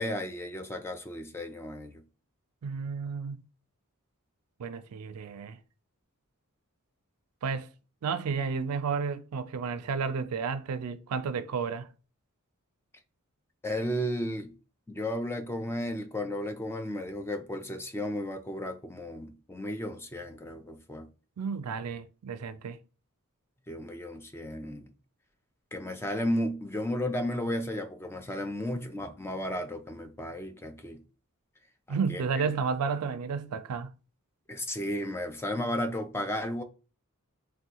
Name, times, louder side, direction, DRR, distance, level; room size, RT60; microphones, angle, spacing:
voice 1, 0.0-1.9 13.6-14.5 14.9-21.1 23.7-24.9 25.7-31.0 31.9-32.2 34.5-36.6, left 1 dB, 10° left, 0.4 m, -34 dB
voice 2, 2.6-3.4 4.6-5.6 7.4-7.7 8.0-11.9 21.4-22.8 31.9-33.9, right 5 dB, 80° right, 0.4 m, -32 dB
3.5 x 2.2 x 2.7 m
head